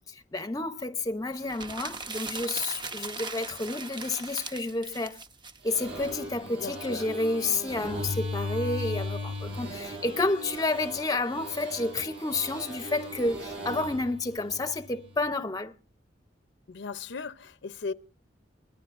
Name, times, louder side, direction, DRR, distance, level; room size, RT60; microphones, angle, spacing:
voice 1, 0.1-5.2 5.6-15.7, left 2 dB, 20° left, 0.7 m, -30 dB
sound 1, 1.4-6.1, right 4 dB, 25° right, 0.7 m, -39 dB
sound 2, 5.6-15.1, left 1 dB, 70° right, 7.9 m, -37 dB
voice 2, 6.6-7.0 16.7-17.9, left 4 dB, 70° left, 0.6 m, -37 dB
24.0 x 19.0 x 2.5 m
head